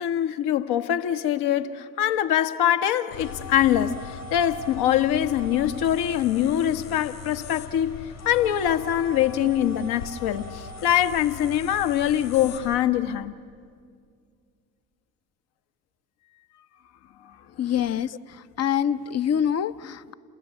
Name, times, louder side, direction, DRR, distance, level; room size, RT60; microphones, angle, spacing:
voice 1, 0.0-13.4 17.2-17.4 17.6-17.7, left 11 dB, 60° left, 1.3 m, -24 dB
sound 1, 3.1-12.7, left 5 dB, 90° left, 5.0 m, -39 dB
voice 2, 17.6-18.1 18.6-20.1, left 9 dB, 35° left, 0.8 m, -25 dB
28.5 x 19.5 x 9.6 m
figure-of-eight pair, 55°, 44 cm